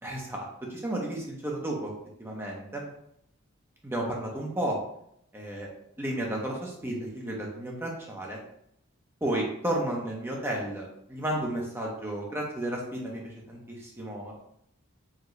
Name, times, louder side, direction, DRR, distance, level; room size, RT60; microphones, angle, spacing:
voice 1, 0.0-1.9 2.2-2.9 3.8-4.8 5.3-5.7 6.0-8.4 9.2-14.3, right 1 dB, 10° right, -2 dB, 0.8 m, -33 dB
4.8 x 3.0 x 3.1 m, 0.73 s
head